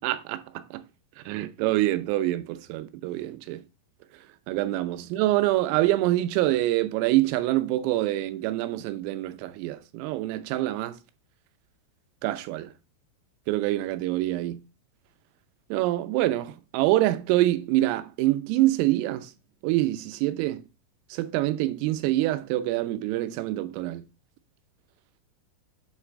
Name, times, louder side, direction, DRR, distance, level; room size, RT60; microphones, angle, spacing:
voice 1, 0.0-0.8 1.3-3.6 4.5-11.0 12.2-12.7 13.5-14.6 15.7-19.3 19.6-20.6 21.1-24.0, right 16 dB, 85° right, 3.3 m, -26 dB
8.1 x 3.2 x 6.1 m
omnidirectional pair, 5.9 m